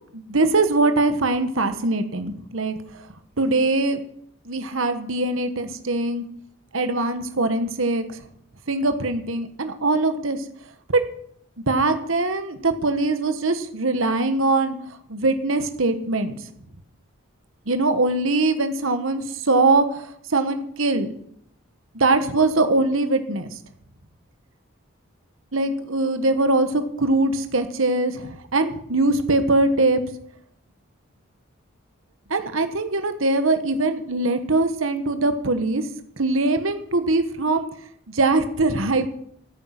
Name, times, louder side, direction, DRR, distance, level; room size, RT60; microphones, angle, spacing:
voice 1, 0.1-2.8 3.4-4.0 4.4-6.2 6.7-8.2 8.7-10.4 10.9-11.0 11.7-14.7 15.1-16.4 17.7-21.1 21.9-23.5 25.5-30.0 32.3-35.9 36.2-37.7 38.1-39.1, right 2 dB, 70° right, 9 dB, 1.4 m, -22 dB
15.5 x 9.2 x 6.0 m, 0.68 s
head